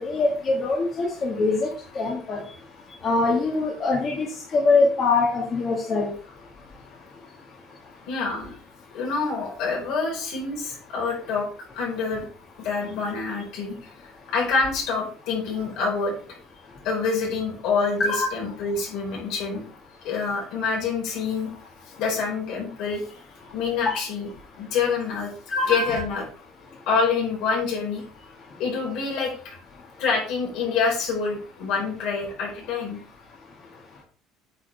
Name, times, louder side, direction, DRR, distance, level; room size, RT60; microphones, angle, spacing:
voice 1, 0.0-1.7 2.0-2.4 3.0-4.3 4.5-6.1 18.1-18.3 23.9-24.0 25.5-26.0, left 3 dB, 30° left, -2 dB, 1.8 m, -23 dB
voice 2, 8.1-8.5 8.9-11.5 11.7-12.2 12.6-13.9 14.3-16.1 16.8-19.6 20.0-21.5 22.0-23.0 23.5-24.3 24.6-25.3 25.7-26.2 26.9-28.0 28.6-29.5 30.0-33.0, left 4 dB, 65° left, -1 dB, 4.6 m, -26 dB
9.0 x 7.4 x 3.5 m, 0.41 s
cardioid pair, 165°, 0 cm